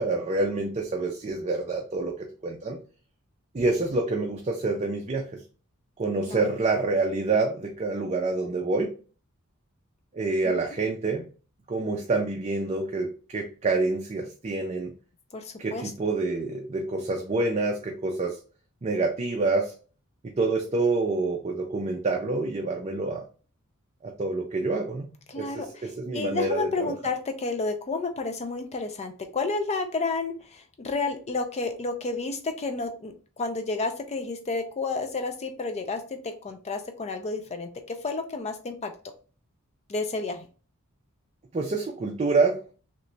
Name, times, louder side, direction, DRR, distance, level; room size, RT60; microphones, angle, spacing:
voice 1, 0.0-2.8 3.5-5.4 6.0-8.9 10.1-11.3 11.7-14.9 15.6-18.4 18.8-19.7 20.2-23.2 24.0-25.1 25.4-26.9 41.5-42.7, right 3 dB, 30° right, 1 dB, 0.5 m, -27 dB
voice 2, 15.3-15.9 25.3-38.9 39.9-40.5, left 3 dB, 30° left, 6 dB, 0.4 m, -31 dB
3.2 x 2.9 x 2.6 m, 0.37 s
head